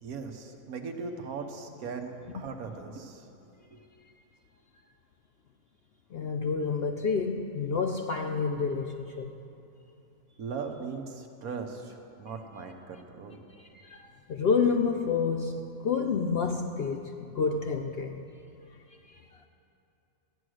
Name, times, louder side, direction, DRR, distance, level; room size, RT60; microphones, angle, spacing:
voice 1, 0.0-3.3 3.7-3.8 10.4-13.4, right 5 dB, 85° right, 5 dB, 1.5 m, -39 dB
voice 2, 6.1-9.3 13.6-18.2, left 5 dB, 60° left, 4 dB, 0.7 m, -29 dB
14.0 x 9.3 x 6.3 m, 2.8 s
omnidirectional pair, 1.5 m